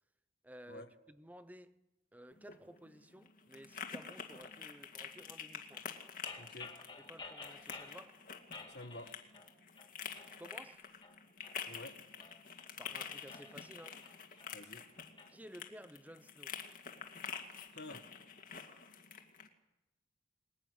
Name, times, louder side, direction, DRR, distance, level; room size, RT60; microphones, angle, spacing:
voice 1, 0.4-1.8 2.1-5.9 7.0-8.2 10.3-10.8 12.8-14.0 15.3-16.6, equal, 10° right, 0.8 m, -54 dB
sound 1, 2.3-19.5, left 6 dB, 45° left, 2.3 m, -48 dB
sound 2, 6.2-8.0 8.5-9.5 9.8-10.3 10.8-12.7 13.2-15.3, left 4 dB, 25° left, 2.7 m, -52 dB
voice 2, 6.4-6.7 8.7-9.1 11.7-12.0 14.5-14.8 17.7-18.0, left 1 dB, 60° left, 1.9 m, -49 dB
22.0 x 20.5 x 9.7 m
head